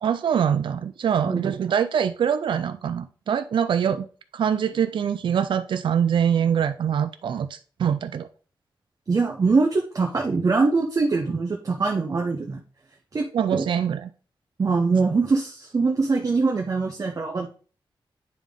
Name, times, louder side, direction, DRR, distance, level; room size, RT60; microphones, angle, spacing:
voice 1, 0.0-4.1 4.3-8.3 13.3-14.1, right 8 dB, 65° right, 0.4 m, -24 dB
voice 2, 9.1-12.6 13.1-13.3 13.5-13.7 14.6-17.5, right 4 dB, 40° right, 0.7 m, -23 dB
9.2 x 3.5 x 3.6 m
wide cardioid pair, 130°, 9 cm